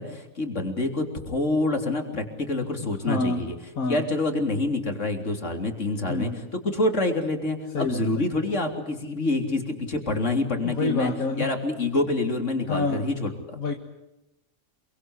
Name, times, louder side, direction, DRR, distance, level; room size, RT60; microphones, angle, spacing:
voice 1, 0.0-3.6 3.9-11.1 11.4-13.6, left 2 dB, 55° left, 3.8 m, -27 dB
voice 2, 2.8-4.1 6.1-6.4 7.7-8.0 10.6-11.6 12.7-13.1 13.6-13.7, left 3 dB, 80° left, 2.2 m, -28 dB
27.5 x 23.5 x 8.2 m
omnidirectional pair, 1.5 m